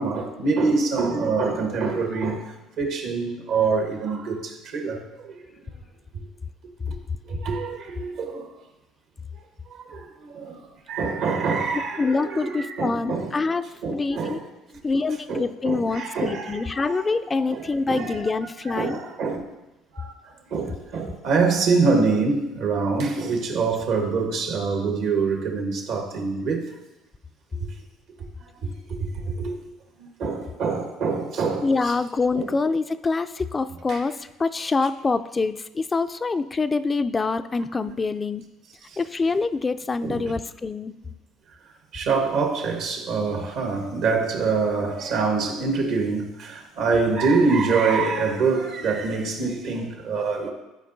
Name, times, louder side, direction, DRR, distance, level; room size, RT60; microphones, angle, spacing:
voice 1, 0.0-5.4 6.1-6.2 6.9-7.0 7.2-8.5 9.7-13.3 13.8-14.5 15.3-17.1 17.5-18.4 18.7-19.4 19.9-26.7 28.4-28.7 29.0-29.5 30.0-31.9 32.3-32.5 33.9-34.0 37.8-37.9 38.9-39.0 40.0-40.3 41.9-50.5, right 4 dB, 70° right, 1.4 m, -25 dB
voice 2, 12.0-13.6 13.9-14.4 14.8-19.0 31.6-38.4 39.0-40.9, left 4 dB, 25° left, 0.3 m, -25 dB
12.0 x 5.0 x 2.7 m
supercardioid pair, 75°, 0 cm